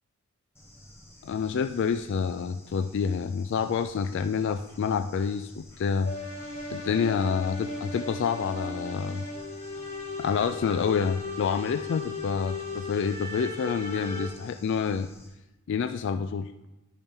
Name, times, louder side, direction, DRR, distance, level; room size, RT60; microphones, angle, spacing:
Bird / Insect, 0.5-15.3, left 1 dB, 10° left, 1.3 m, -52 dB
voice 1, 1.2-6.1 6.7-9.2 10.2-15.1 15.7-16.5, left 6 dB, 55° left, 8 dB, 0.3 m, -28 dB
sound 1, 6.0-14.3, left 3 dB, 40° left, 1.8 m, -36 dB
10.0 x 3.5 x 5.4 m, 0.97 s
head